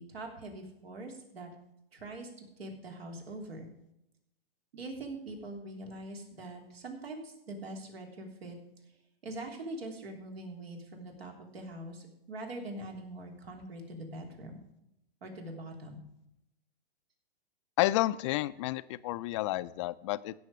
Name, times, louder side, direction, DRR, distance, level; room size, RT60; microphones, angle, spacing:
voice 1, 0.0-1.5 1.9-3.7 4.7-8.6 9.2-14.5 15.2-16.0, right 2 dB, 80° right, 2 dB, 3.3 m, -43 dB
voice 2, 17.8-20.3, left 16 dB, 30° left, 15 dB, 0.4 m, -30 dB
16.5 x 6.5 x 4.8 m, 0.82 s
hypercardioid pair, 125°, 30 cm